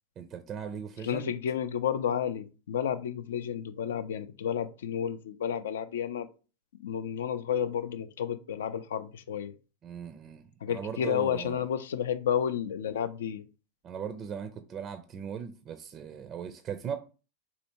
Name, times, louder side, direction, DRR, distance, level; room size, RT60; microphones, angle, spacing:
voice 1, 0.2-1.3 9.8-11.7 13.8-17.0, right 7 dB, 35° right, 0.4 m, -38 dB
voice 2, 1.0-6.3 6.8-9.5 10.6-13.4, left 8 dB, 75° left, 0.3 m, -31 dB
4.2 x 2.7 x 2.9 m
hypercardioid pair, 95°, 0 cm